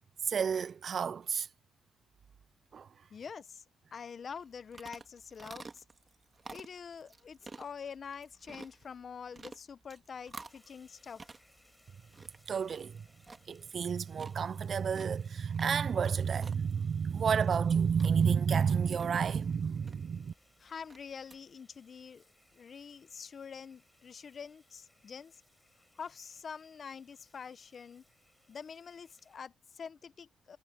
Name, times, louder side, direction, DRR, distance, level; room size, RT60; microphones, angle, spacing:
voice 1, 0.2-1.5 2.7-2.9 12.5-13.1 13.5-20.3, right 6 dB, 50° right, 0.5 m, -30 dB
voice 2, 3.1-3.6 3.9-5.8 6.5-11.3 20.6-22.2 22.5-25.4 26.0-28.0 28.5-30.6, left 6 dB, 45° left, 0.9 m, -46 dB
sound 1, 4.3-21.4, right 3 dB, 30° right, 2.0 m, -53 dB
sound 2, 10.5-29.4, left 1 dB, 5° left, 6.2 m, -67 dB
cardioid pair, 90°, 0 cm